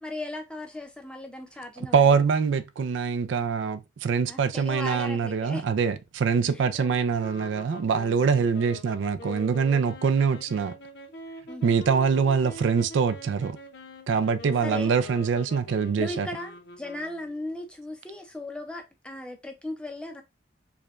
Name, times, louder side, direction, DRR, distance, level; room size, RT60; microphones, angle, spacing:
voice 1, 0.0-2.2 4.2-5.6 6.5-7.0 11.5-11.8 14.6-15.0 16.0-20.2, left 2 dB, 5° left, 0.4 m, -37 dB
voice 2, 1.8-10.8 11.6-13.6 14.1-16.3, right 6 dB, 70° right, 0.3 m, -24 dB
sound 1, 7.2-17.6, left 1 dB, 60° left, 0.6 m, -44 dB
4.7 x 2.2 x 2.4 m
head